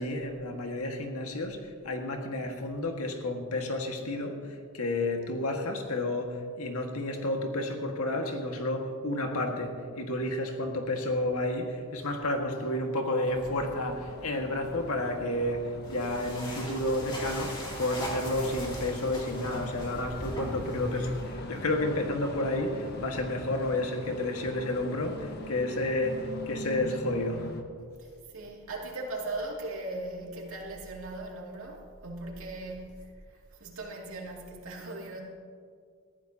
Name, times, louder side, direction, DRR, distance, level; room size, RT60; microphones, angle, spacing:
voice 1, 0.0-27.5, left 1 dB, 85° left, 3 dB, 1.7 m, -31 dB
sound 1, 13.3-27.6, left 1 dB, 50° left, 1.1 m, -42 dB
sound 2, 15.8-21.4, equal, 25° left, 2.8 m, -39 dB
voice 2, 28.3-32.9 33.6-35.2, right 2 dB, 70° right, -1 dB, 2.5 m, -38 dB
19.5 x 14.0 x 2.9 m, 2.1 s
head